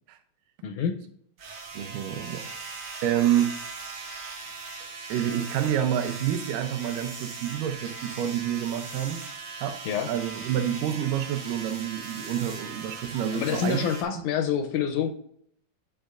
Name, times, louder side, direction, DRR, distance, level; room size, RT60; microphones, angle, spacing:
voice 1, 0.6-1.0 9.9-10.1 13.3-15.1, left 8 dB, 80° left, 1.9 m, -27 dB
sound 1, 1.4-14.0, right 4 dB, 60° right, 1.4 m, -39 dB
voice 2, 1.7-2.7 3.0-3.5 5.1-9.2 9.6-13.8 14.2-14.3, right 10 dB, 85° right, 2.4 m, -28 dB
10.0 x 5.1 x 2.5 m
omnidirectional pair, 3.8 m